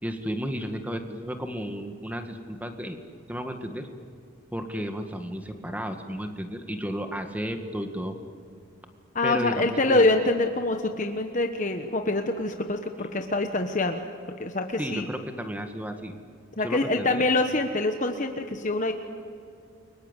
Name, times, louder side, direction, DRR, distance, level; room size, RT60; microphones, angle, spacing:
voice 1, 0.0-3.0 3.3-3.9 4.5-8.2 9.2-10.0 14.8-16.1 16.6-17.2, equal, 5° right, 6 dB, 1.8 m, -33 dB
voice 2, 9.1-14.0 14.4-15.1 16.6-18.9, left 2 dB, 35° left, 5 dB, 1.2 m, -25 dB
29.5 x 23.5 x 8.2 m, 2.4 s
head